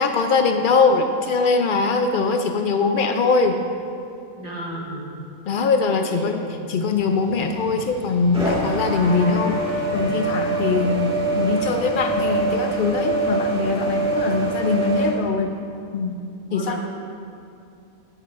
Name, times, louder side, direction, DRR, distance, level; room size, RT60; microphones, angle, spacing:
voice 1, 0.0-3.6 5.5-6.4 6.7-9.6 9.9-15.5 15.9-16.2 16.5-16.8, left 4 dB, 85° left, 5 dB, 0.4 m, -21 dB
voice 2, 4.4-5.3 6.1-6.7 16.5-16.8, right 1 dB, 30° right, -4 dB, 1.4 m, -33 dB
sound 1, 6.8-15.1, right 3 dB, 5° right, 1.5 m, -25 dB
17.0 x 6.4 x 2.5 m, 2.6 s
omnidirectional pair, 1.4 m